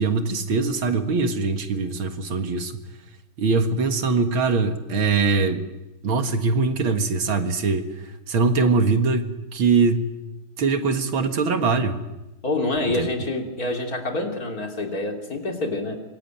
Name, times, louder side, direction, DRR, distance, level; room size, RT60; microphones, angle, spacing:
voice 1, 0.0-2.7 3.4-5.6 6.0-7.9 8.3-10.1 10.6-12.0 12.9-13.1, right 4 dB, 75° right, 7 dB, 2.6 m, -22 dB
voice 2, 12.4-16.0, left 2 dB, 45° left, 3 dB, 3.8 m, -27 dB
26.0 x 23.5 x 9.4 m, 0.97 s
omnidirectional pair, 2.2 m